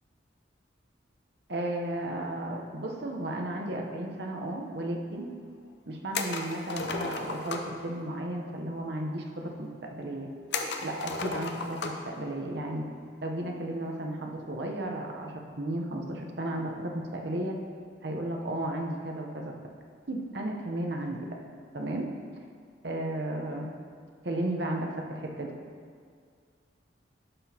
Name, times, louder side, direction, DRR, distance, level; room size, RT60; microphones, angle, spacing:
voice 1, 1.5-5.2 5.9-10.3 10.8-12.8 13.2-17.6 18.0-19.5 20.1-21.3 21.7-22.1 22.8-23.7 24.2-25.5, right 1 dB, 60° right, 1 dB, 0.9 m, -34 dB
sound 1, 6.1-7.8 10.5-12.1 12.5-12.6 14.2-14.5, left 4 dB, 60° left, 0.6 m, -34 dB
12.0 x 5.9 x 2.9 m, 2.1 s
head